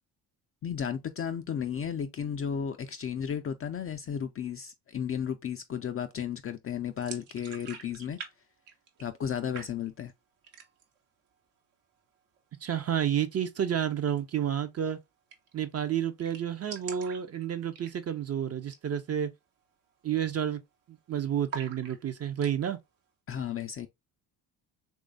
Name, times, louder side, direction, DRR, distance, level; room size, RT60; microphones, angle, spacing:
voice 1, 0.6-8.2 9.0-10.1 23.3-23.9, left 8 dB, 30° left, 0.4 m, -34 dB
sound 1, 7.0-8.3 8.6-9.3 9.5-10.1 10.4-11.0 11.3-11.4 11.7-12.4 14.1-14.2 14.5-14.6 14.8-14.9 15.3-15.6 15.9-16.0 16.2-18.3 18.6-18.9 19.2-19.3 19.9-20.1 20.4-21.0 21.5-22.5, right 6 dB, 70° right, 1.0 m, -45 dB
voice 2, 12.6-15.0 15.5-19.3 20.0-20.6 20.9-22.8, right 9 dB, 30° right, 0.5 m, -30 dB
3.2 x 2.5 x 3.7 m
hypercardioid pair, 55°, 49 cm